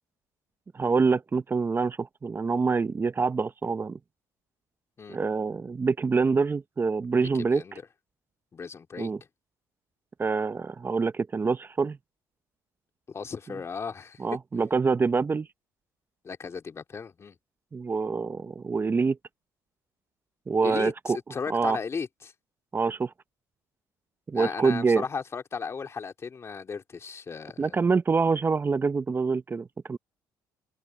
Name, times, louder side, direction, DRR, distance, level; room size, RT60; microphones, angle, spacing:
voice 1, 0.7-4.0 5.1-7.6 9.0-9.2 10.2-12.0 14.2-15.5 17.7-19.2 20.5-21.2 21.5-21.8 22.7-23.1 24.3-25.0 27.6-30.0, right 4 dB, 30° right, 1.0 m, -26 dB
voice 2, 7.4-7.8 8.5-9.1 13.1-14.2 16.2-17.4 20.6-22.3 24.3-27.9, left 5 dB, 35° left, 2.9 m, -36 dB
supercardioid pair, 80°, 8 cm